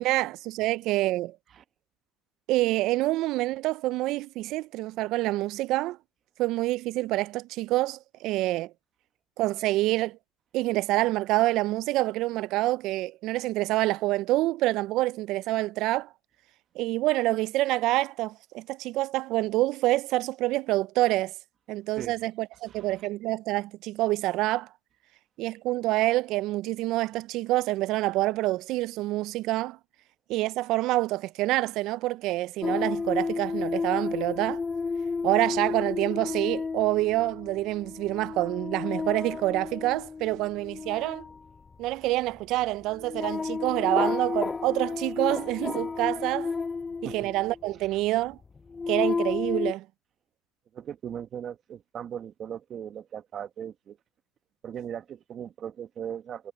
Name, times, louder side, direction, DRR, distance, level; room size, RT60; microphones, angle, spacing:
voice 1, 0.0-1.4 2.5-6.0 6.4-8.7 9.4-10.2 10.5-16.1 16.8-21.3 21.7-24.7 25.4-29.8 30.3-34.6 35.2-41.2 41.8-46.5 47.0-48.4 48.9-49.9, right 17 dB, 70° right, 0.4 m, -27 dB
sound 1, 32.6-47.7 48.4-49.7, left 4 dB, 25° left, 0.6 m, -32 dB
voice 2, 50.7-54.0 54.6-56.5, right 9 dB, 45° right, 1.3 m, -38 dB
supercardioid pair, 105°, 0 cm